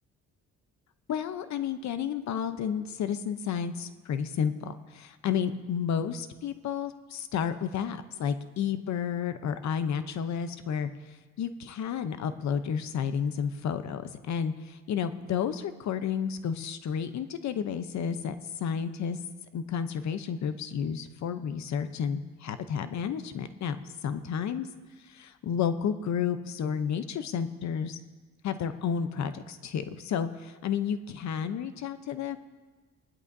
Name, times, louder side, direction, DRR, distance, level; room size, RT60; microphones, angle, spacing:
voice 1, 1.1-19.2 19.5-23.8 24.0-24.7 25.0-28.0 28.4-32.4, left 7 dB, 65° left, 11 dB, 0.8 m, -31 dB
19.5 x 11.0 x 2.7 m, 1.3 s
cardioid pair, 90°, 30 cm